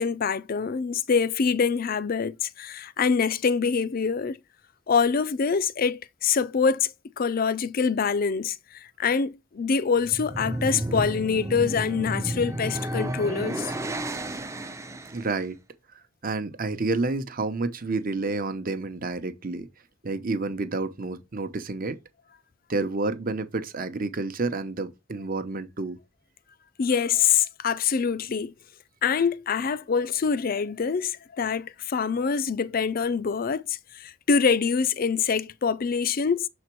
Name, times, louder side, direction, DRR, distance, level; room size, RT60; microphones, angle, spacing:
voice 1, 0.0-4.4 4.9-13.8 26.8-28.5 29.0-36.5, left 6 dB, 50° left, 0.4 m, -25 dB
sound 1, 9.9-15.4, right 1 dB, 15° right, 0.5 m, -32 dB
voice 2, 15.1-15.6 16.2-19.7 20.0-22.0 22.7-26.0, right 3 dB, 45° right, 0.8 m, -29 dB
6.9 x 4.3 x 4.5 m
head